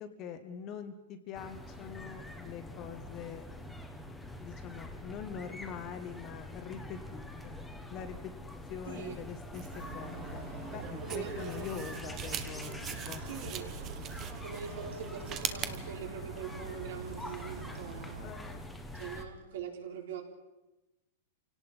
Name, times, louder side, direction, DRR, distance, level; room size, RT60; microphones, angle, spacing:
voice 1, 0.0-3.4 3.9-7.6 7.9-8.3 8.7-9.6 9.9-13.5 14.6-14.8 18.2-18.8, left 7 dB, 25° left, 8 dB, 1.2 m, -44 dB
sound 1, 1.3-19.2, left 1 dB, ahead, 1.2 m, -45 dB
voice 2, 8.9-9.2 11.0-12.0 13.2-13.7 14.4-18.2 18.9-20.2, right 7 dB, 60° right, 2 dB, 4.2 m, -43 dB
sound 2, 9.5-15.8, right 9 dB, 20° right, 1.0 m, -42 dB
sound 3, 9.7-18.3, right 5 dB, 85° right, 2.5 m, -46 dB
27.5 x 17.5 x 5.5 m, 1.0 s
supercardioid pair, 175°, 0 cm